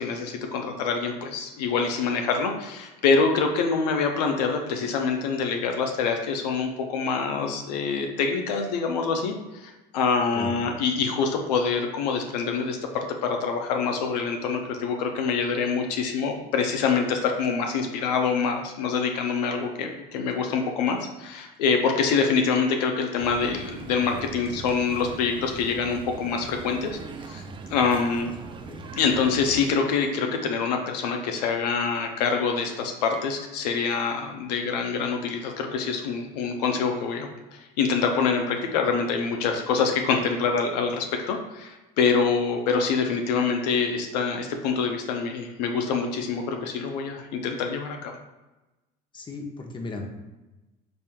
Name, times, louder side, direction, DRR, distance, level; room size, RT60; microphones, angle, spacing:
voice 1, 0.0-27.0 27.3-27.4 27.7-28.3 29.0-48.1, left 5 dB, 85° left, 4 dB, 0.5 m, -25 dB
sound 1, 23.2-29.8, right 4 dB, 25° right, 0.4 m, -41 dB
voice 2, 28.3-28.9 49.1-50.2, left 3 dB, 25° left, 3 dB, 0.7 m, -36 dB
5.2 x 2.9 x 2.2 m, 1.1 s
supercardioid pair, 85°, 20 cm